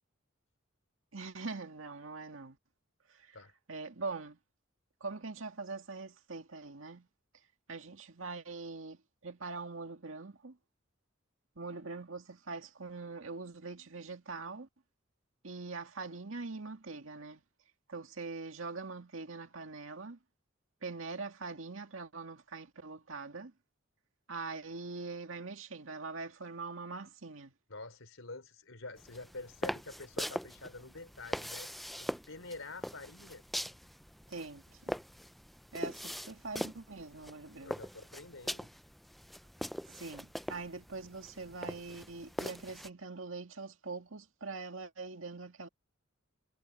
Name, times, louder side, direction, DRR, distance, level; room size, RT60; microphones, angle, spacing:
voice 1, 1.1-2.6 3.1-3.4 3.7-4.4 5.0-7.1 7.7-10.6 11.6-14.7 15.4-17.4 17.9-20.2 20.8-23.5 24.3-27.5 34.3-35.0 35.7-37.8 39.9-45.7, right 3 dB, 85° right, 2.0 m, -43 dB
voice 2, 27.7-31.7 32.0-33.4 37.6-38.7, left 3 dB, 85° left, 3.6 m, -47 dB
sound 1, 29.0-42.9, equal, ahead, 0.4 m, -42 dB
head